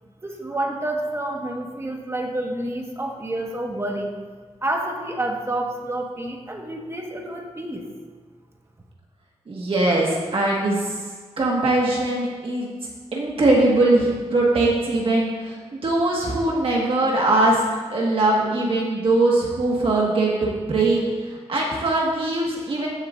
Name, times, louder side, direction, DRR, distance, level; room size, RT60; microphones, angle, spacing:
voice 1, 0.2-4.1 4.6-7.9, right 1 dB, 25° right, 1 dB, 1.4 m, -28 dB
voice 2, 9.5-11.0 11.4-12.7 13.1-17.6 17.9-22.9, right 2 dB, 55° right, -3 dB, 1.6 m, -21 dB
15.5 x 7.2 x 2.5 m, 1.5 s
wide cardioid pair, 95°, 12 cm